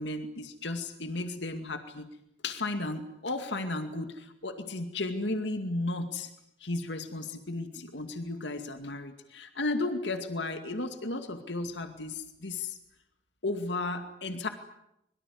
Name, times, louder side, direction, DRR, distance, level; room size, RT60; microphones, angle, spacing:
voice 1, 0.0-2.1 2.4-6.3 6.6-12.8 13.4-14.5, left 2 dB, 80° left, 7 dB, 2.3 m, -34 dB
24.0 x 23.5 x 9.5 m, 0.81 s
head